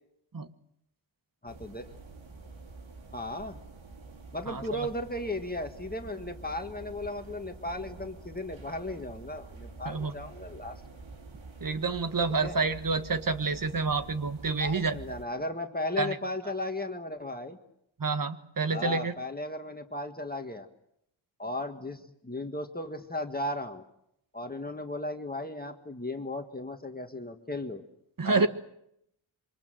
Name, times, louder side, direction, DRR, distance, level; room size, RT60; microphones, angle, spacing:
voice 1, 1.4-1.9 3.1-3.6 4.3-10.8 12.4-12.5 14.6-17.6 18.7-20.7 21.4-23.8 24.3-27.8 28.2-28.5, left 1 dB, 20° left, 5 dB, 1.7 m, -36 dB
sound 1, 1.5-15.3, right 3 dB, 80° right, 3.4 m, -47 dB
voice 2, 4.5-4.9 9.8-10.1 11.6-15.0 16.0-16.2 18.0-19.1 28.2-28.5, right 4 dB, 45° right, 10 dB, 1.5 m, -28 dB
27.0 x 24.5 x 7.7 m, 0.77 s
wide cardioid pair, 110°, 47 cm